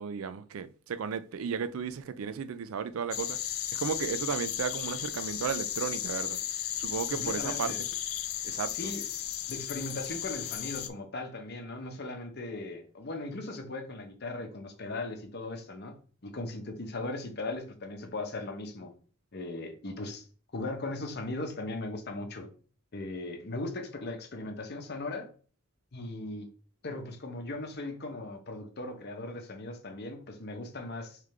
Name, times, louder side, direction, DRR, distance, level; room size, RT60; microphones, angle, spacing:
voice 1, 0.0-3.4 3.7-6.4 6.8-7.7 8.4-8.9, right 6 dB, 85° right, 0.4 m, -34 dB
sound 1, 3.1-10.9, left 11 dB, 85° left, 0.5 m, -35 dB
voice 2, 7.1-7.8 8.7-9.1 9.5-18.9 19.3-20.3 20.5-22.5 22.9-25.3 25.9-26.5 26.8-31.2, left 2 dB, 50° left, 0.9 m, -38 dB
3.7 x 3.3 x 3.2 m
head